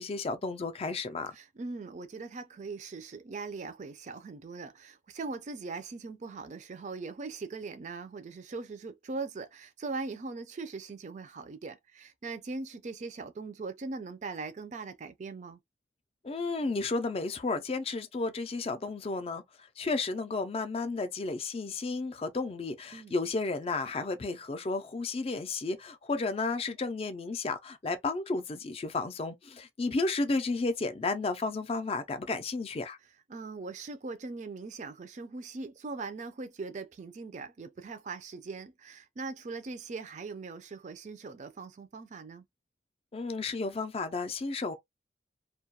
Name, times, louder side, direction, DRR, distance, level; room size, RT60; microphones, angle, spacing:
voice 1, 0.0-1.4 16.2-33.0 43.1-44.8, left 3 dB, 30° left, 0.4 m, -32 dB
voice 2, 1.3-15.6 22.9-23.1 33.3-42.4, right 3 dB, 40° right, 0.4 m, -40 dB
2.3 x 2.2 x 2.7 m
head